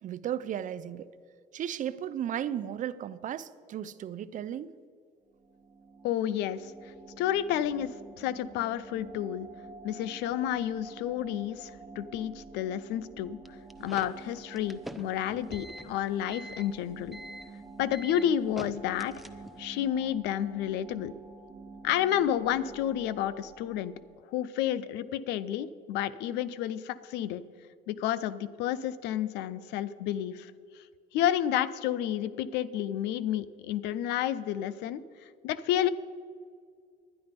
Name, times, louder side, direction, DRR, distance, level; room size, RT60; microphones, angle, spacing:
voice 1, 0.0-1.1 1.5-4.7, right 10 dB, 50° right, 14 dB, 0.5 m, -35 dB
sound 1, 5.3-24.2, right 4 dB, 25° right, 1.0 m, -49 dB
voice 2, 6.0-9.5 9.8-17.2 17.8-19.1 19.6-21.1 21.8-23.9 24.3-27.4 27.9-30.5 30.8-30.9 31.1-35.0 35.4-35.9, left 11 dB, 90° left, 17 dB, 0.5 m, -30 dB
sound 2, 13.5-19.7, right 1 dB, ahead, 0.6 m, -45 dB
11.0 x 10.5 x 5.2 m, 2.1 s
cardioid pair, 110°, 17 cm